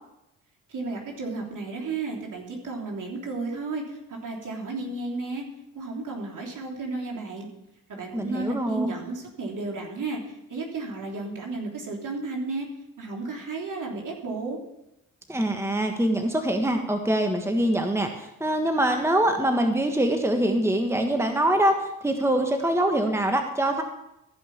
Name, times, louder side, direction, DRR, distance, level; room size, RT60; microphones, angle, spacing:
voice 1, 0.7-5.4 5.7-7.5 7.9-12.7 13.0-14.6, right 3 dB, 60° right, -1 dB, 3.4 m, -33 dB
voice 2, 8.1-8.9 15.3-23.8, right 1 dB, 5° right, 5 dB, 1.5 m, -24 dB
14.5 x 5.4 x 7.1 m, 0.87 s
supercardioid pair, 50°, 36 cm